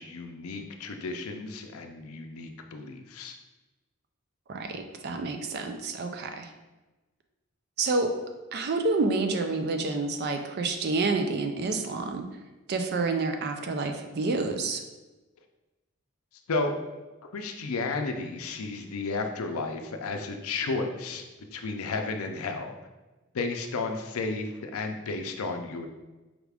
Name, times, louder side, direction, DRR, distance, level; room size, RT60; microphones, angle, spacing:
voice 1, 0.0-3.4 16.5-16.7 17.2-21.2 21.5-22.8 23.3-25.9, left 3 dB, 80° left, 5 dB, 0.5 m, -33 dB
voice 2, 4.5-6.5 7.8-8.1 8.5-12.3 12.7-14.8, right 3 dB, 50° right, 5 dB, 0.4 m, -28 dB
5.0 x 2.4 x 3.4 m, 1.1 s
head